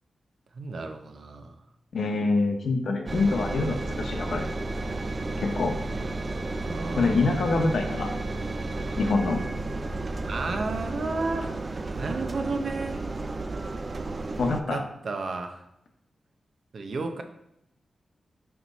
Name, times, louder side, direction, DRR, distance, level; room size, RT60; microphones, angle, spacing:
voice 1, 0.5-1.6 6.6-7.4 10.2-11.5 12.0-13.0 14.5-15.6 16.7-17.2, right 3 dB, 65° right, 5 dB, 0.7 m, -32 dB
voice 2, 1.9-4.5 5.4-5.8 7.0-8.1 9.0-9.4 14.4-14.8, left 3 dB, 75° left, 4 dB, 1.0 m, -25 dB
Engine, 3.1-14.6, right 2 dB, 35° right, 0.4 m, -32 dB
6.0 x 4.4 x 4.0 m, 0.81 s
wide cardioid pair, 110°, 0 cm